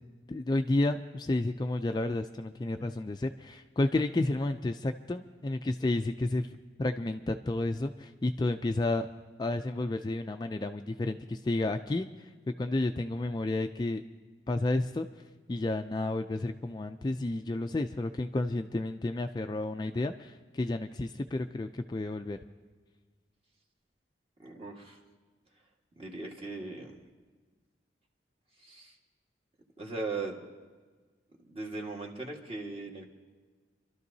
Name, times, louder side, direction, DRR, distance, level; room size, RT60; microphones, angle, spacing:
voice 1, 0.3-9.1 9.4-14.0 14.5-15.1 15.5-22.4, left 2 dB, 25° left, 7 dB, 0.3 m, -31 dB
voice 2, 24.4-25.0 25.5-25.7 25.9-27.0 28.6-29.0 29.8-30.5 31.4-33.1, right 3 dB, 30° right, 0 dB, 1.6 m, -39 dB
28.5 x 12.5 x 2.7 m, 1.4 s
head